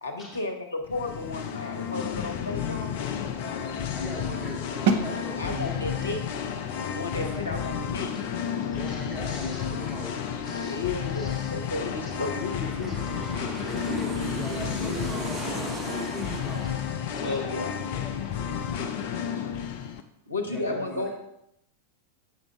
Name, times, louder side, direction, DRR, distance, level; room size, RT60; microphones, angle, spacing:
voice 1, 0.0-3.4 5.4-6.4 6.8-8.1 10.6-13.0 17.1-17.7 19.4-19.5 20.3-21.1, left 3 dB, 80° left, 3 dB, 0.9 m, -33 dB
Singing, 0.8-20.0, left 8 dB, 50° left, 0.5 m, -32 dB
voice 2, 3.9-6.2 7.1-7.6 8.1-8.2 8.7-10.2 10.4-10.8 11.1-11.5 13.6-16.7 17.0-17.1 20.4-21.1, right 1 dB, 5° left, -5 dB, 2.4 m, -39 dB
sound 1, 4.9-10.6, right 5 dB, 50° right, 0.6 m, -34 dB
Aircraft, 7.7-18.6 18.9-19.0, right 2 dB, 20° right, 0.8 m, -41 dB
voice 3, 17.1-18.9 20.5-21.1, left 2 dB, 25° left, -8 dB, 2.0 m, -43 dB
7.1 x 5.2 x 3.2 m, 0.81 s
figure-of-eight pair, 90°, 0 cm